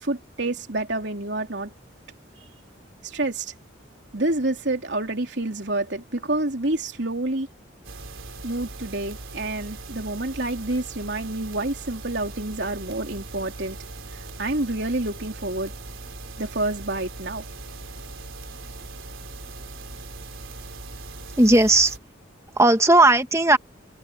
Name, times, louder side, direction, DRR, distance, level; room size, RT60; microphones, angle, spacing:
voice 1, 0.0-1.7 3.0-3.5 4.1-7.5 8.4-13.8 14.1-15.7 16.4-17.5, right 2 dB, 60° right, 3.6 m, -28 dB
sound 1, 7.8-22.0, right 3 dB, 85° right, 3.4 m, -40 dB
voice 2, 21.4-22.0 22.5-23.6, right 2 dB, 15° right, 1.5 m, -16 dB
head